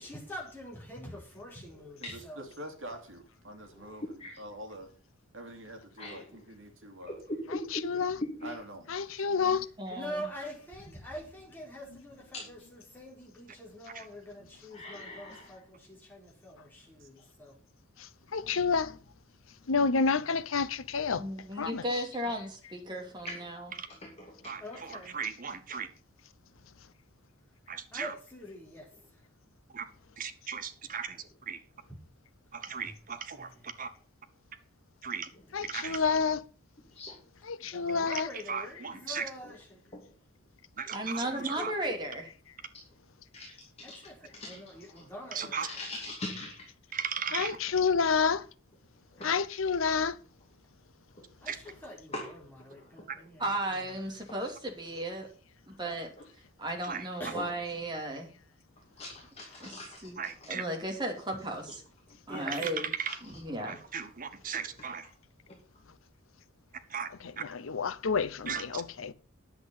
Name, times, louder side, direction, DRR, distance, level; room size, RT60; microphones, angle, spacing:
voice 1, 0.0-2.4 9.5-17.6 24.6-25.2 25.5-25.6 27.9-28.9 32.8-32.9 33.3-33.8 35.6-35.8 37.6-39.9 41.0-41.1 41.5-41.7 43.8-45.6 51.4-53.9 57.2-57.4 59.5-59.6 62.3-62.5 63.7-63.8, equal, 10° left, 4.1 m, -45 dB
voice 2, 2.0-4.9 5.3-7.2 8.4-8.8 17.0-17.1, right 1 dB, 70° right, 2.7 m, -45 dB
voice 3, 3.7-4.4 6.0-6.2 7.1-8.5 9.9-10.0 12.3-12.5 14.7-15.5 22.2-22.3 23.3-23.4 24.0-24.5 35.9-36.1 36.9-37.2 39.9-40.1 40.9-41.0 43.3-43.5 43.9-44.0 44.3-44.6 45.6-46.6 49.1-49.3 51.2-51.3 52.1-52.3 52.7-53.1 57.3-57.5 59.0-60.0 63.1-63.2 65.5-65.6, left 1 dB, 30° left, 2.5 m, -41 dB
voice 4, 7.5-8.2 8.9-9.7 18.3-18.9 19.7-21.2 21.6-22.0 35.5-36.4 37.5-38.3 47.3-48.4 49.2-50.2 67.2-69.1, left 5 dB, 80° left, 0.8 m, -29 dB
voice 5, 9.8-10.2 21.2-23.7 40.9-42.3 53.4-55.3 55.8-56.1 56.6-58.3 59.6-59.7 60.0-60.2 60.5-61.8 62.3-62.9 63.2-63.8, right 1 dB, 20° right, 2.7 m, -35 dB
voice 6, 24.4-25.9 27.7-28.1 29.7-29.8 30.2-31.2 31.5-31.6 32.5-33.5 33.8-33.9 35.0-35.3 35.6-36.0 38.1-39.3 40.8-41.7 45.3-45.7 46.9-47.6 51.5-51.6 56.8-57.0 60.2-60.6 62.5-63.1 63.7-65.1 66.9-67.1 67.4-67.5 68.5-68.8, right 7 dB, 40° right, 1.0 m, -37 dB
10.5 x 8.2 x 5.6 m
head